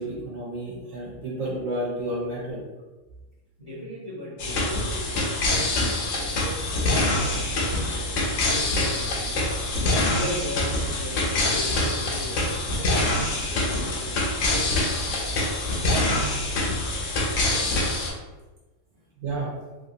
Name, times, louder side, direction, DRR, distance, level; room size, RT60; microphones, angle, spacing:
voice 1, 0.0-2.6 19.2-19.5, right 1 dB, 90° right, -5 dB, 1.2 m, -31 dB
voice 2, 3.6-9.5 10.1-14.8 15.1-15.4 18.9-19.0, left 1 dB, 30° left, -14 dB, 1.0 m, -39 dB
sound 1, 4.4-18.1, left 2 dB, 75° left, 1.0 m, -25 dB
3.1 x 2.6 x 2.6 m, 1.2 s
omnidirectional pair, 1.3 m